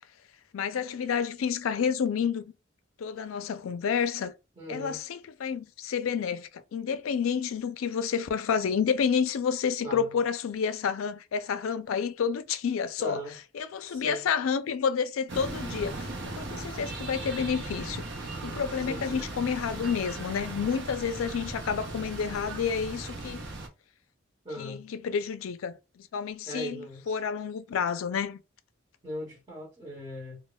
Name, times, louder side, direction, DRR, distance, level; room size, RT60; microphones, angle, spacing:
voice 1, 0.5-2.4 3.0-4.3 4.7-13.2 13.5-16.1 16.3-18.0 18.4-23.4 24.6-28.4, left 6 dB, 85° left, 0.4 m, -29 dB
voice 2, 4.5-5.0 9.8-10.1 13.0-13.4 13.9-14.2 18.8-19.3 24.4-24.8 26.4-27.2 29.0-30.4, equal, 25° right, 1.1 m, -39 dB
sound 1, 15.3-23.7, right 2 dB, 60° right, 0.6 m, -38 dB
2.2 x 2.1 x 3.8 m
head